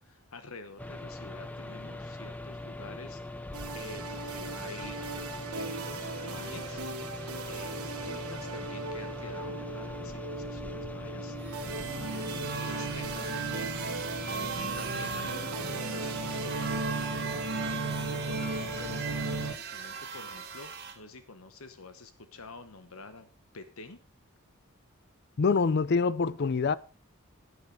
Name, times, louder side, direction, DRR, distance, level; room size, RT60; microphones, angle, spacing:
voice 1, 0.0-3.5 3.7-6.8 7.4-11.6 11.9-13.7 14.5-23.3 23.5-24.0, left 3 dB, 75° left, 1.1 m, -48 dB
sound 1, 0.8-19.6, left 2 dB, 5° left, 0.6 m, -41 dB
sound 2, 3.5-19.5, right 3 dB, 80° right, 1.1 m, -37 dB
sound 3, 11.4-21.0, right 6 dB, 45° right, 2.1 m, -39 dB
voice 2, 25.4-26.7, left 4 dB, 50° left, 0.4 m, -25 dB
10.5 x 9.7 x 4.7 m
head